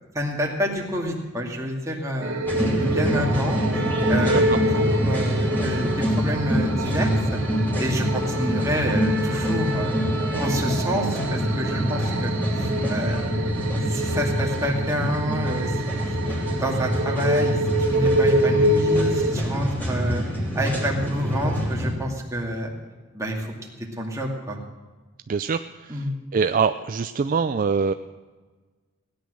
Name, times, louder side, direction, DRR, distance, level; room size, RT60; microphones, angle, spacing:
voice 1, 0.0-3.6 4.1-4.4 4.7-7.4 7.8-9.9 10.4-12.3 12.6-13.3 13.9-15.8 16.6-20.2 20.6-22.7 23.1-23.7 24.0-24.6 25.9-26.1, equal, 15° right, -1 dB, 2.3 m, -28 dB
sound 1, 2.2-19.3, right 1 dB, 70° right, 1.7 m, -27 dB
sound 2, 2.5-21.9, equal, 10° left, 3.0 m, -25 dB
voice 2, 4.3-4.6 25.3-26.1 26.3-27.9, right 5 dB, 40° right, 10 dB, 0.4 m, -24 dB
17.0 x 10.5 x 6.4 m, 1.3 s
head